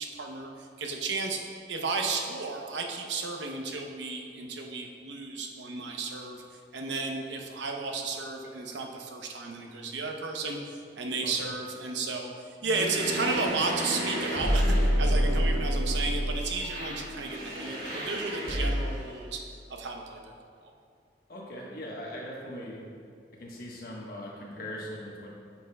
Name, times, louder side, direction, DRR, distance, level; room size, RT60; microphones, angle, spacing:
voice 1, 0.0-1.4 1.7-6.4 6.7-19.4 19.7-20.2 20.6-20.7, right 3 dB, 90° right, 2 dB, 0.8 m, -33 dB
sound 1, 12.6-19.1, equal, 55° right, 1.5 m, -28 dB
voice 2, 21.3-22.8 23.4-25.3, left 1 dB, 55° left, -3 dB, 1.2 m, -40 dB
9.3 x 5.8 x 2.3 m, 2.3 s
head